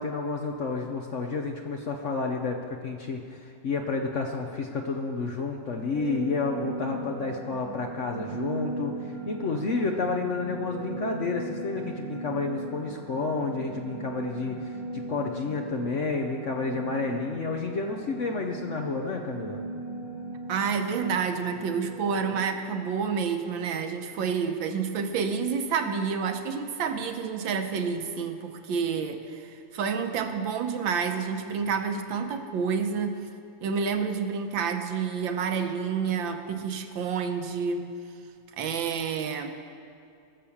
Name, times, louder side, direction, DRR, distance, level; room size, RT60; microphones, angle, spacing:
voice 1, 0.0-19.6, left 4 dB, 55° left, 3 dB, 0.8 m, -30 dB
sound 1, 5.9-22.4, right 2 dB, 50° right, 2.0 m, -38 dB
voice 2, 20.5-33.2 33.6-37.9 38.6-39.5, right 6 dB, 90° right, 6 dB, 1.7 m, -29 dB
18.0 x 6.7 x 7.1 m, 2.5 s
omnidirectional pair, 2.0 m